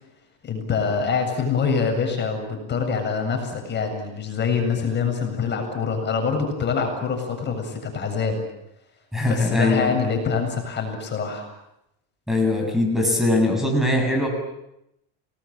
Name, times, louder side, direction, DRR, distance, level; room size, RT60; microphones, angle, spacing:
voice 1, 0.4-8.4 9.3-11.5, left 5 dB, 35° left, 4 dB, 7.5 m, -25 dB
voice 2, 9.1-10.2 12.3-14.3, left 2 dB, ahead, 2 dB, 7.5 m, -21 dB
29.5 x 19.5 x 8.8 m, 0.84 s
supercardioid pair, 120°, 32 cm